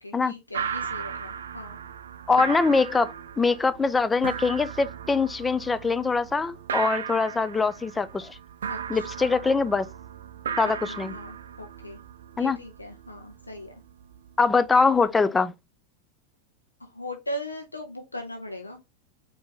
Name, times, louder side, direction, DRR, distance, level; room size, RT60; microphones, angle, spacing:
voice 1, 0.0-1.8 8.7-9.5 10.6-12.0 12.4-13.8 16.8-18.8, equal, 85° left, 0.7 m, -39 dB
sound 1, 0.5-15.1, right 7 dB, 65° right, 0.4 m, -37 dB
voice 2, 2.3-8.4 8.9-9.9 10.6-11.1 12.4-12.6 14.4-15.5, left 4 dB, 15° left, 0.3 m, -23 dB
4.6 x 2.7 x 3.6 m
figure-of-eight pair, 90°, 0 cm